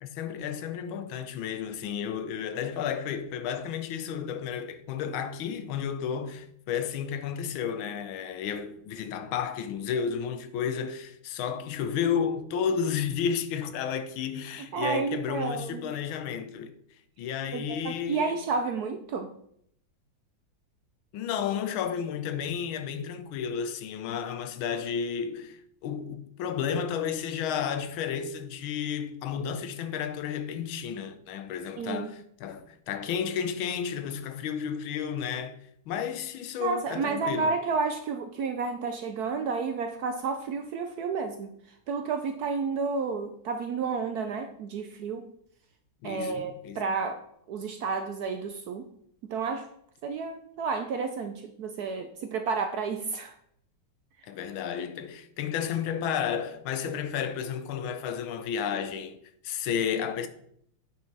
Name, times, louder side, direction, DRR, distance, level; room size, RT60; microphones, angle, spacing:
voice 1, 0.0-16.7 17.2-18.4 21.1-35.6 35.9-37.6 46.0-46.8 54.3-59.2 59.4-60.3, left 7 dB, 85° left, 1.5 m, -32 dB
voice 2, 14.6-15.9 17.5-19.3 31.8-32.1 36.6-41.5 41.9-45.3 46.0-48.9 49.2-49.7 50.0-53.3, right 5 dB, 70° right, 0.9 m, -31 dB
8.9 x 5.5 x 4.0 m
omnidirectional pair, 2.2 m